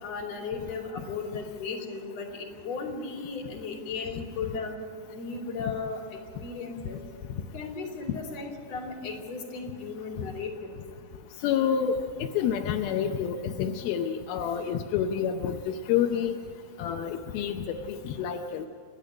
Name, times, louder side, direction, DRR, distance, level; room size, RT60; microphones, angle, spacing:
voice 1, 0.0-4.7 5.1-7.0 7.5-10.7, left 4 dB, 40° left, 1 dB, 3.4 m, -36 dB
voice 2, 11.4-12.0 12.3-16.4 16.8-18.7, left 8 dB, 80° left, 4 dB, 2.2 m, -28 dB
27.5 x 10.5 x 9.8 m, 2.1 s
omnidirectional pair, 5.2 m